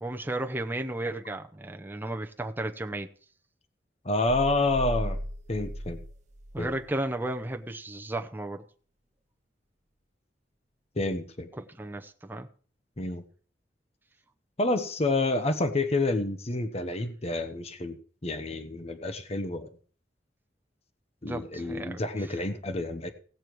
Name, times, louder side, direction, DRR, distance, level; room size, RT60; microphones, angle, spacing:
voice 1, 0.0-3.1 6.5-8.6 11.5-12.5 21.2-22.4, right 1 dB, 10° right, 0.8 m, -34 dB
voice 2, 4.0-5.2 5.5-6.0 6.6-6.7 11.0-11.5 13.0-13.2 14.6-18.0 18.2-19.7 21.2-23.1, left 2 dB, 35° left, 1.0 m, -28 dB
sound 1, 4.3-7.0, equal, 40° right, 1.0 m, -36 dB
17.0 x 6.7 x 4.6 m
head